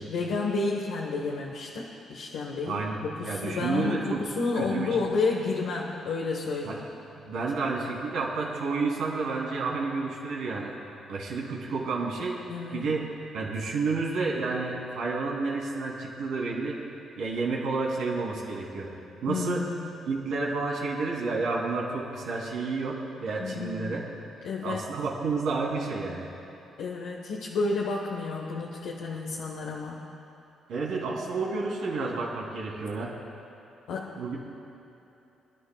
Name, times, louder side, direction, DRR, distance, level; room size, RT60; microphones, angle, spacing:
voice 1, 0.0-6.8 12.5-13.0 19.3-20.0 23.4-23.9 24.4-24.8 26.8-30.0 33.9-34.3, left 3 dB, 85° left, -2 dB, 1.1 m, -31 dB
voice 2, 2.7-4.3 4.5-5.0 6.6-6.8 7.2-10.7 11.1-12.4 12.7-13.0 13.3-16.8 17.2-18.9 19.2-19.6 20.1-24.1 24.6-26.3 30.7-33.1 34.2-34.4, right 4 dB, 80° right, -2 dB, 2.7 m, -30 dB
26.5 x 11.0 x 2.3 m, 3.0 s
cardioid pair, 90°, 0 cm